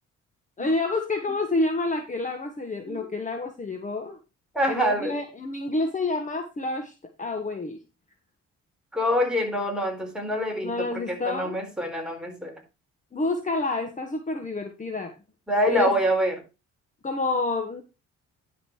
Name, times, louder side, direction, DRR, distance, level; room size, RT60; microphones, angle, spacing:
voice 1, 0.6-4.2 4.7-7.8 10.6-11.6 13.1-15.1 15.7-16.0 17.0-17.8, left 2 dB, 25° left, 5 dB, 1.5 m, -28 dB
voice 2, 4.5-5.2 8.9-12.6 15.5-16.4, equal, 5° right, 1 dB, 4.2 m, -26 dB
11.0 x 5.4 x 4.6 m, 0.28 s
cardioid pair, 90°, 30 cm